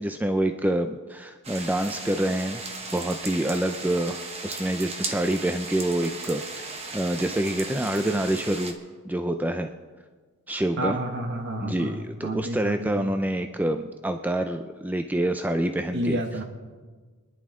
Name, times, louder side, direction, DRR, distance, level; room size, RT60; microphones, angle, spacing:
voice 1, 0.0-2.6 2.9-8.7 9.0-9.7 10.5-11.0 11.6-16.2, right 1 dB, 10° right, 7 dB, 0.4 m, -27 dB
sound 1, 1.4-8.7, right 3 dB, 30° right, 1.2 m, -36 dB
voice 2, 10.8-13.1 15.9-16.4, right 1 dB, 55° right, 4 dB, 1.6 m, -30 dB
26.5 x 10.5 x 3.7 m, 1.4 s
head